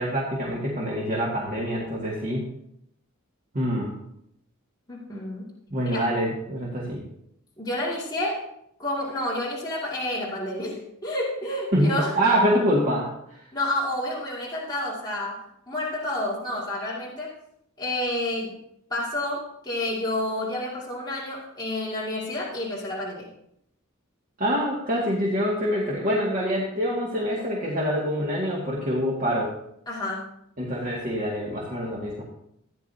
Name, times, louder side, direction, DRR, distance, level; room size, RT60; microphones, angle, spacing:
voice 1, 0.0-2.4 3.5-3.9 5.7-7.0 11.7-13.4 24.4-29.5 30.6-32.2, equal, 40° right, -5 dB, 2.1 m, -25 dB
voice 2, 4.9-5.5 5.8-6.1 7.6-8.4 8.8-12.2 13.5-17.3 17.8-18.6 18.9-23.3 29.9-30.3, left 1 dB, 20° left, -6 dB, 2.4 m, -29 dB
15.5 x 10.5 x 2.8 m, 0.75 s
head